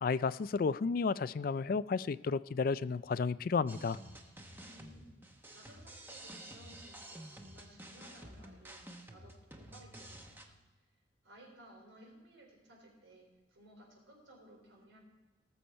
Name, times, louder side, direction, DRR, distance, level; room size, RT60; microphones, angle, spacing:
voice 1, 0.0-4.0, left 5 dB, 50° left, 17 dB, 0.3 m, -32 dB
sound 1, 3.7-10.4, right 1 dB, 10° right, 0.9 m, -51 dB
voice 2, 4.5-10.6 11.2-15.0, right 1 dB, 90° right, 0 dB, 4.0 m, -59 dB
18.5 x 7.0 x 4.4 m, 1.2 s
head